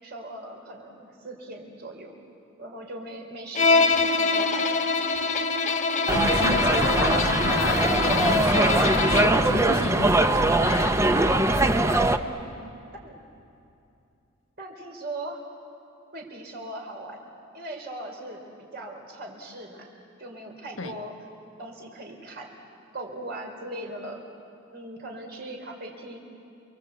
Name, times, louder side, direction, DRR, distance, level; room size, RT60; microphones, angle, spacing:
voice 1, 0.0-2.2 2.6-4.9 12.2-12.6 13.0-13.2 14.6-15.4 16.1-17.3 17.5-18.4 18.7-19.9 20.2-21.2 21.6-22.5 22.9-24.2 24.7-26.2, right 1 dB, 55° right, 1 dB, 4.8 m, -39 dB
Bowed string instrument, 3.6-9.5, left 4 dB, 40° left, 1.0 m, -24 dB
voice 2, 6.1-11.0 20.8-20.9, left 3 dB, 90° left, 7 dB, 1.4 m, -33 dB
sound 1, 6.1-12.2, right 2 dB, 15° right, 0.8 m, -22 dB
29.5 x 23.0 x 8.3 m, 2.6 s
head